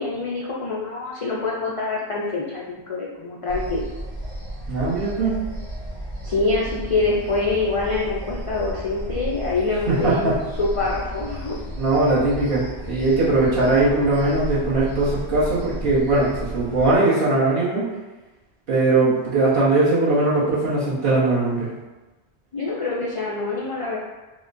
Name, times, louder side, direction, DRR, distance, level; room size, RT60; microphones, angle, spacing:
voice 1, 0.0-3.8 6.2-11.6 22.5-24.0, left 3 dB, 60° left, -5 dB, 0.3 m, -25 dB
sound 1, 3.5-17.0, right 1 dB, 25° right, 0.8 m, -33 dB
voice 2, 4.7-5.4 9.9-10.4 11.7-17.9 18.7-21.7, right 2 dB, 55° right, -9 dB, 1.2 m, -20 dB
4.7 x 2.1 x 2.5 m, 1.2 s
omnidirectional pair, 1.1 m